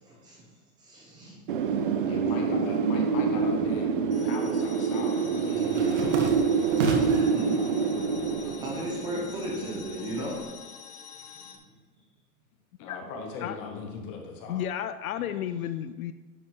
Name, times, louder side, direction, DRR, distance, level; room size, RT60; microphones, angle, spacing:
voice 1, 0.1-0.4 0.8-1.4 2.4-2.6 5.6-5.9 6.5-8.0 8.6-10.4 11.3-11.4, equal, 10° right, -3 dB, 0.9 m, -37 dB
Wind, 1.5-10.2, right 5 dB, 40° right, 0.4 m, -26 dB
voice 2, 2.1-6.1 12.8-14.6, left 4 dB, 20° left, 2 dB, 0.8 m, -40 dB
sound 1, 3.9-4.2 4.5-7.4 7.8-8.5 8.8-10.4, right 4 dB, 55° right, 1.5 m, -34 dB
sound 2, 4.1-11.6, left 6 dB, 85° left, 1.3 m, -47 dB
voice 3, 14.5-16.1, left 10 dB, 65° left, 11 dB, 0.5 m, -32 dB
10.5 x 5.2 x 3.7 m, 1.3 s
supercardioid pair, 175°, 45 cm